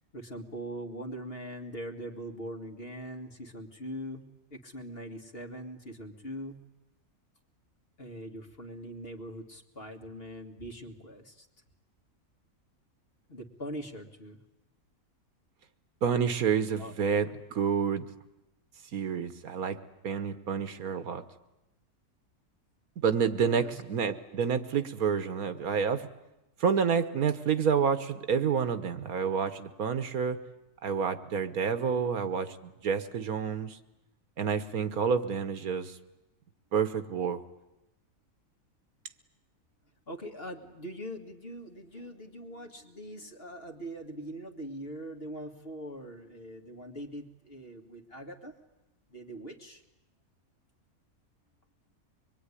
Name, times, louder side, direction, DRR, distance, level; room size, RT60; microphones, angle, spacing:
voice 1, 0.1-6.6 8.0-11.5 13.3-14.4 16.8-16.9 23.4-23.8 40.1-48.5 49.1-49.8, equal, 40° left, 3 dB, 2.4 m, -42 dB
voice 2, 16.0-18.1 18.9-19.8 20.0-21.2 23.0-26.1 26.6-30.4 30.8-33.8 34.4-36.0 36.7-37.4, right 6 dB, 75° right, 11 dB, 1.6 m, -29 dB
25.0 x 22.5 x 9.9 m, 0.95 s
omnidirectional pair, 1.6 m